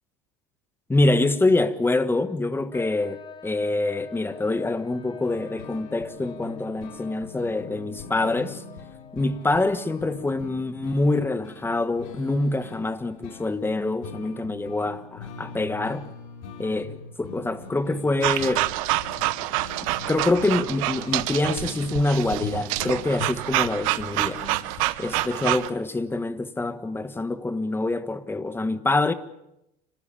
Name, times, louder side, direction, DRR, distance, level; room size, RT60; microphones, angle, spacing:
voice 1, 0.9-8.6 9.1-16.1 16.6-18.7 20.1-24.4 25.0-29.1, left 2 dB, 15° left, 1.5 m, -25 dB
sound 1, 2.7-10.3, left 5 dB, 30° left, 2.8 m, -45 dB
sound 2, 5.2-24.8, left 5 dB, 80° left, 3.5 m, -42 dB
sound 3, 18.2-25.7, right 18 dB, 80° right, 1.0 m, -27 dB
30.0 x 13.0 x 8.7 m
supercardioid pair, 100°, 17 cm